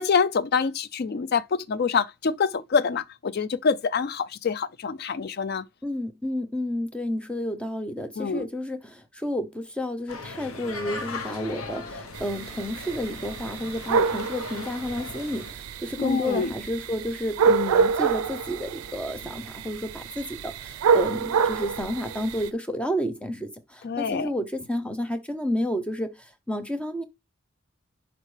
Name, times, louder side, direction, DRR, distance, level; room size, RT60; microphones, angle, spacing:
voice 1, 0.0-5.6 8.2-8.5 16.0-16.5 23.8-24.3, left 5 dB, 45° left, 0.4 m, -26 dB
voice 2, 5.8-27.0, left 1 dB, 5° left, 0.6 m, -31 dB
sound 1, 10.1-15.5, left 3 dB, 70° left, 0.9 m, -38 dB
sound 2, 12.1-22.5, right 5 dB, 80° right, 0.4 m, -27 dB
10.5 x 4.1 x 3.3 m
head